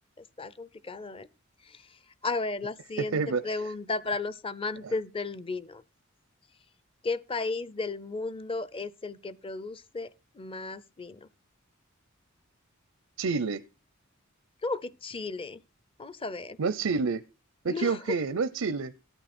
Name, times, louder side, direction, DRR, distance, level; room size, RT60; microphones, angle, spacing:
voice 1, 0.2-1.3 1.6-5.8 7.0-11.3 14.6-15.6 16.0-16.6 17.7-18.2, left 3 dB, 25° left, 0.6 m, -34 dB
voice 2, 13.2-13.6 16.6-17.2 17.6-18.9, right 4 dB, 90° right, 0.6 m, -28 dB
13.5 x 9.0 x 4.3 m
head